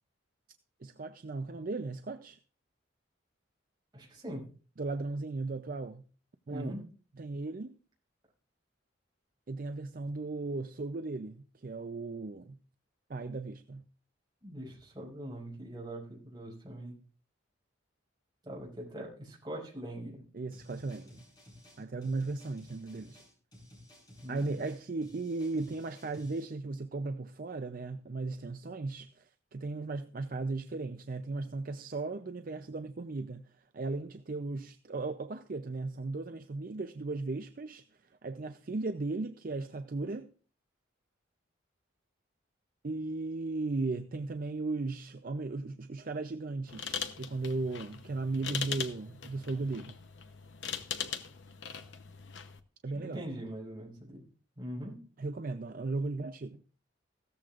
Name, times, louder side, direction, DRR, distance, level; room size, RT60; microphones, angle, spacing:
voice 1, 0.8-2.4 4.8-6.1 6.5-6.8 7.2-7.8 9.5-12.6 13.1-13.8 20.3-21.2 21.8-23.2 24.3-37.8 38.2-40.3 42.8-50.0 52.8-53.3 55.2-56.6, right 3 dB, 45° right, 0.5 m, -36 dB
voice 2, 3.9-4.5 6.5-6.8 14.4-17.0 18.4-20.2 24.2-24.6 52.9-54.2 54.6-55.0, right 1 dB, 20° right, 5.5 m, -42 dB
sound 1, 20.5-26.5, left 1 dB, 20° left, 4.3 m, -55 dB
sound 2, 46.7-52.6, left 8 dB, 70° left, 0.9 m, -40 dB
16.0 x 13.5 x 2.5 m
head